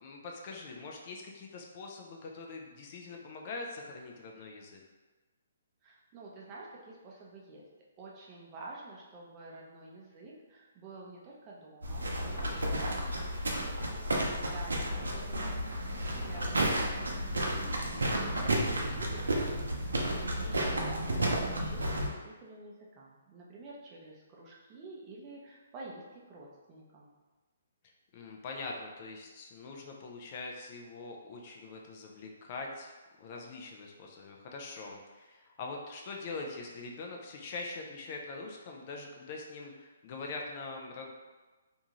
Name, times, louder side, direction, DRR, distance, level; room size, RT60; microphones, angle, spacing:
voice 1, 0.0-4.8 16.1-16.5 28.1-32.9 33.2-41.1, left 3 dB, 40° left, 1 dB, 0.4 m, -43 dB
voice 2, 5.8-7.6 8.0-19.8 20.2-27.1, right 2 dB, 25° right, -4 dB, 0.6 m, -49 dB
sound 1, 11.8-22.1, right 1 dB, 85° right, 0.5 m, -32 dB
2.6 x 2.3 x 2.9 m, 1.2 s
hypercardioid pair, 145°, 0 cm